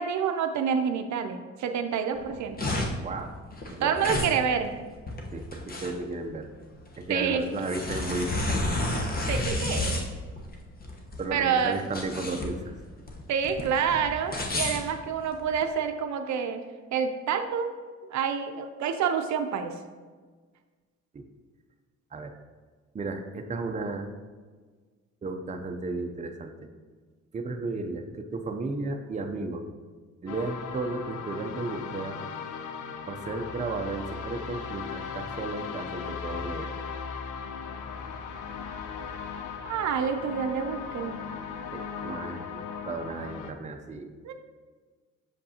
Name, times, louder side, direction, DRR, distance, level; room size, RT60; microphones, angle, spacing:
voice 1, 0.0-2.7 3.8-4.7 7.1-7.4 9.2-10.1 11.3-11.8 13.3-16.6 16.9-17.7 18.1-19.8 39.7-41.2 44.2-44.3, right 7 dB, 70° right, 6 dB, 0.5 m, -28 dB
sound 1, 2.2-15.7, left 2 dB, 30° left, 1.0 m, -32 dB
voice 2, 3.7-4.2 5.3-6.5 7.0-8.6 8.9-9.0 11.2-12.7 21.1-21.2 22.1-22.3 22.9-24.1 25.2-26.7 27.3-29.7 30.2-32.2 33.1-36.7 41.7-44.1, right 3 dB, 25° right, 5 dB, 0.5 m, -34 dB
sound 2, 30.3-43.5, left 6 dB, 85° left, 0.6 m, -38 dB
6.6 x 5.2 x 2.8 m, 1.5 s
cardioid pair, 95°, 30 cm